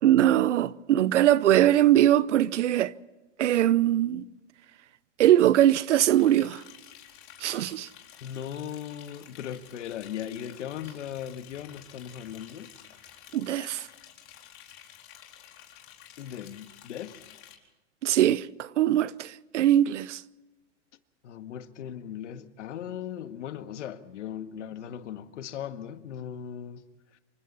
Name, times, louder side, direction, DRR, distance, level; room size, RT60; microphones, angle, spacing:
voice 1, 0.0-2.9 3.4-4.2 5.2-6.6 7.4-7.9 13.3-13.9 18.0-20.2, right 12 dB, 80° right, 1.0 m, -21 dB
Liquid, 5.9-17.5, left 10 dB, 40° left, 4.4 m, -51 dB
voice 2, 8.2-12.7 16.2-17.2 21.2-26.8, left 9 dB, 80° left, 1.9 m, -38 dB
28.0 x 25.0 x 4.2 m
hypercardioid pair, 130°, 36 cm